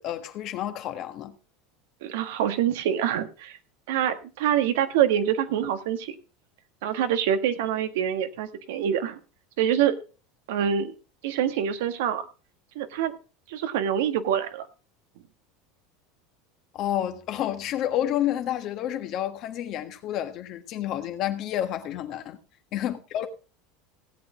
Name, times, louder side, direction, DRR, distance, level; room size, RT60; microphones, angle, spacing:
voice 1, 0.0-1.4 16.7-22.4 22.7-23.3, left 11 dB, 50° left, 1.5 m, -30 dB
voice 2, 2.0-3.6 3.9-6.1 6.8-9.2 9.6-10.0 10.5-10.9 11.2-12.3 12.7-13.1 13.5-14.7, right 9 dB, 80° right, 1.3 m, -25 dB
17.0 x 8.1 x 3.6 m
supercardioid pair, 120°, 0 cm